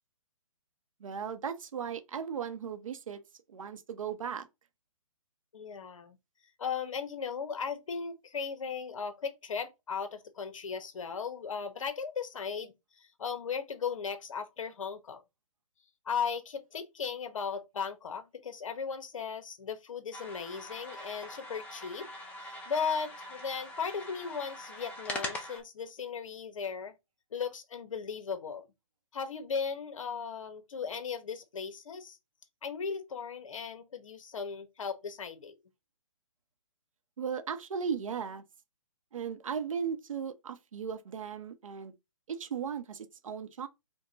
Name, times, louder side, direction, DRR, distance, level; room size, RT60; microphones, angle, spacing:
voice 1, 1.0-3.2 3.5-4.5 37.2-38.4 39.1-41.9 42.3-43.7, right 7 dB, 70° right, 0.8 m, -36 dB
voice 2, 5.5-6.2 6.6-15.2 16.0-22.1 22.4-27.0 27.3-28.7 29.1-32.2 32.6-35.6, left 6 dB, 70° left, 1.0 m, -37 dB
sound 1, 20.1-25.6, left 1 dB, 5° left, 0.6 m, -42 dB
4.6 x 2.2 x 3.9 m
hypercardioid pair, 150°, 18 cm